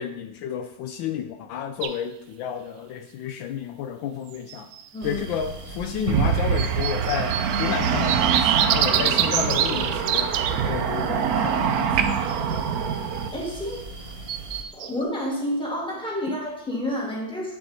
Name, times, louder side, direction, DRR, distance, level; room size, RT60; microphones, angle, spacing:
voice 1, 0.0-4.7 5.0-10.3 10.6-11.9 12.5-12.6, left 8 dB, 75° left, 7 dB, 1.3 m, -31 dB
sound 1, 1.8-1.9 4.3-4.9 6.6-10.5 12.1-12.7 14.3-15.0, right 10 dB, 80° right, 1.4 m, -25 dB
sound 2, 5.0-14.6, right 2 dB, 45° right, 1.6 m, -39 dB
sound 3, 6.1-13.3, right 7 dB, 65° right, 0.9 m, -25 dB
voice 2, 13.3-14.1 14.7-17.6, equal, 5° left, -3 dB, 1.9 m, -29 dB
8.8 x 7.0 x 4.1 m, 0.82 s
omnidirectional pair, 2.2 m